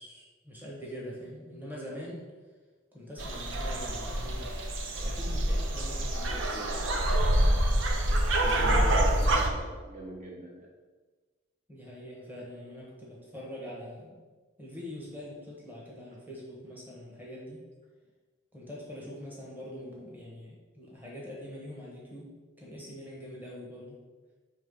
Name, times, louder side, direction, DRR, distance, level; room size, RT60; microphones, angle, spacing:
voice 1, 0.0-2.3 2.9-4.5 4.9-6.8 11.7-14.2 14.6-17.6 18.5-24.0, equal, 10° right, -5 dB, 1.1 m, -44 dB
sound 1, 3.2-9.5, right 1 dB, 75° right, 0.7 m, -26 dB
voice 2, 6.3-7.1 8.4-10.7, equal, 40° right, -4 dB, 1.1 m, -42 dB
5.4 x 3.4 x 5.3 m, 1.4 s
head